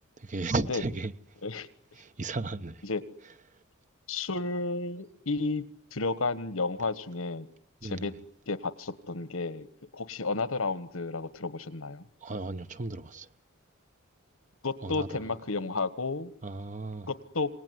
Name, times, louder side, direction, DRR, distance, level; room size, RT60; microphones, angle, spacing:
voice 1, 0.2-1.1 2.0-2.8 7.8-8.1 12.2-13.3 14.8-15.2 16.4-17.1, right 2 dB, 40° right, 1.0 m, -34 dB
voice 2, 4.1-5.6 5.9-7.5 7.8-8.1 8.5-9.7 9.9-12.0 14.6-16.3 17.1-17.6, left 3 dB, 85° left, 1.5 m, -32 dB
27.0 x 19.0 x 9.6 m
head